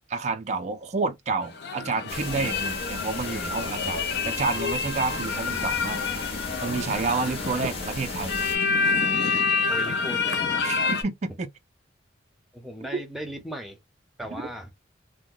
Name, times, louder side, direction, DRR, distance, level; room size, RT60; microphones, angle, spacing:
voice 1, 0.1-4.0 4.2-6.0 6.6-8.3 10.6-11.5 12.8-13.0 14.3-14.4, right 4 dB, 35° right, 0.4 m, -29 dB
sound 1, 1.4-11.0, left 5 dB, 60° left, 0.6 m, -28 dB
sound 2, 2.1-8.6, left 2 dB, 30° left, 1.1 m, -37 dB
voice 2, 7.3-7.7 9.7-10.6 12.5-13.8 14.2-14.7, equal, ahead, 0.7 m, -37 dB
2.8 x 2.1 x 3.7 m
head